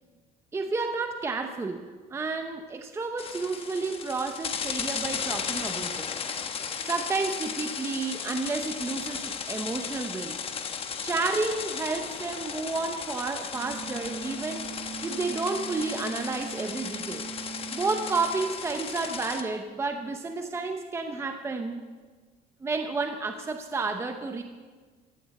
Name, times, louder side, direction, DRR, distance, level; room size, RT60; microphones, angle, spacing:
voice 1, 0.5-1.8 2.1-6.1 6.8-10.4 11.0-14.7 15.0-17.3 17.7-21.8 22.6-24.4, right 3 dB, 15° right, 5 dB, 0.8 m, -31 dB
sound 1, 3.2-19.4, left 6 dB, 30° left, 1.0 m, -35 dB
sound 2, 13.5-18.5, right 7 dB, 80° right, 3.9 m, -41 dB
15.5 x 10.5 x 7.6 m, 1.4 s
cardioid pair, 165°, 19 cm